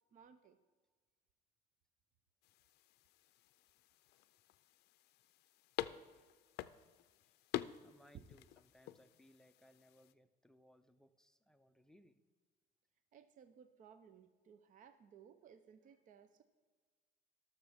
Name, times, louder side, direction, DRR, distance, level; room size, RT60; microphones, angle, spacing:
voice 1, 0.1-0.6 8.1-8.3 13.1-16.4, right 8 dB, 50° right, 10 dB, 0.6 m, -60 dB
sound 1, 2.4-10.1, left 14 dB, 75° left, 0.4 m, -48 dB
voice 2, 7.8-12.2, equal, 5° left, 9 dB, 0.5 m, -67 dB
18.5 x 6.7 x 3.5 m, 1.5 s
cardioid pair, 110°, 17 cm